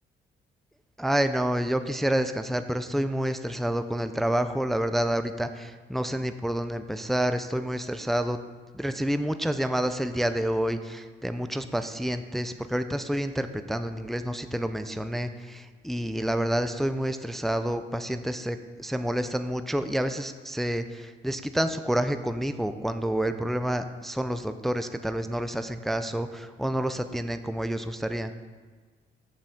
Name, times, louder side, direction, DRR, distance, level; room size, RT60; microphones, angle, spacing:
voice 1, 1.0-8.4 8.7-28.3, right 1 dB, ahead, 9 dB, 0.4 m, -28 dB
7.0 x 5.8 x 6.4 m, 1.4 s
cardioid pair, 90°, 20 cm